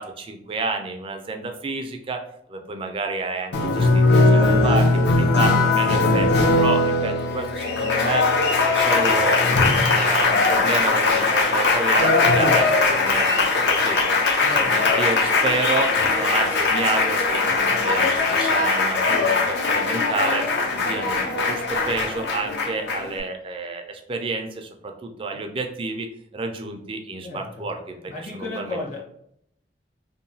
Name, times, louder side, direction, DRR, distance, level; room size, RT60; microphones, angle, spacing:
voice 1, 0.0-2.2 2.5-6.3 6.6-8.3 8.7-9.4 9.9-14.0 14.6-28.0 28.3-28.8, right 3 dB, 30° right, 4 dB, 0.3 m, -30 dB
Applause, 3.5-23.2, left 3 dB, 65° left, 0.6 m, -20 dB
voice 2, 4.3-4.8 14.4-14.9 25.3-25.5 27.2-27.7 28.1-29.0, left 3 dB, 45° left, -4 dB, 1.1 m, -33 dB
2.8 x 2.1 x 2.6 m, 0.73 s
head